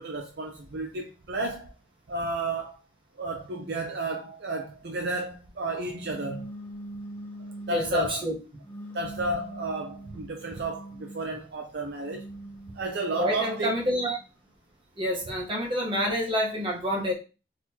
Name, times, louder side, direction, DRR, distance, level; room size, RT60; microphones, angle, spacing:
voice 1, 0.0-1.7 2.1-2.8 3.2-6.5 7.7-8.2 8.9-12.2 12.7-13.7, right 2 dB, 65° right, 0.6 m, -32 dB
sound 1, 6.0-8.0 8.6-11.3 11.9-14.2, right 1 dB, 15° left, 0.5 m, -43 dB
voice 2, 7.7-8.3 13.1-14.2 15.0-17.1, equal, 30° right, 1.0 m, -28 dB
3.9 x 3.0 x 2.8 m
head